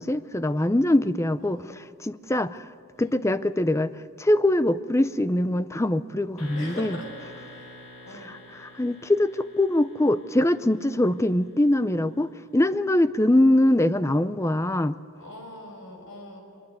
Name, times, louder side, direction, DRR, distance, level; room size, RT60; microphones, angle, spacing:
voice 1, 0.0-2.7 3.0-3.9 4.2-7.0 8.2-15.0, left 1 dB, 15° left, 14 dB, 0.5 m, -23 dB
voice 2, 1.4-1.7 3.0-3.2 6.6-7.1 7.5-8.3 15.2-16.4, left 1 dB, 70° left, 2 dB, 6.1 m, -42 dB
sound 1, 6.4-11.3, left 1 dB, 85° left, 7.4 m, -46 dB
24.0 x 22.0 x 8.2 m, 2.7 s
head